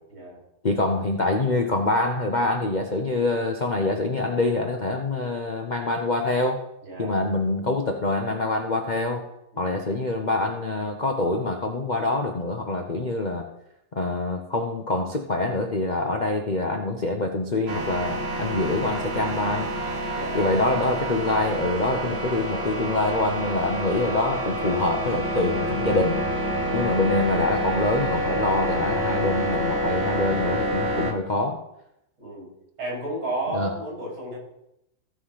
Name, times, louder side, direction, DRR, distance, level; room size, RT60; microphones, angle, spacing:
voice 1, 0.6-6.6 7.0-9.2 9.6-13.5 13.9-19.7 20.3-26.2 26.7-31.6 33.5-33.7, left 2 dB, 50° left, 3 dB, 0.5 m, -25 dB
voice 2, 6.8-7.2 9.5-9.8 20.1-20.5 26.6-26.8 32.2-32.5 32.8-34.4, right 2 dB, 90° right, -5 dB, 5.6 m, -32 dB
sound 1, 17.7-31.1, right 1 dB, 35° right, 1.3 m, -28 dB
15.0 x 5.1 x 5.7 m, 0.84 s
omnidirectional pair, 2.2 m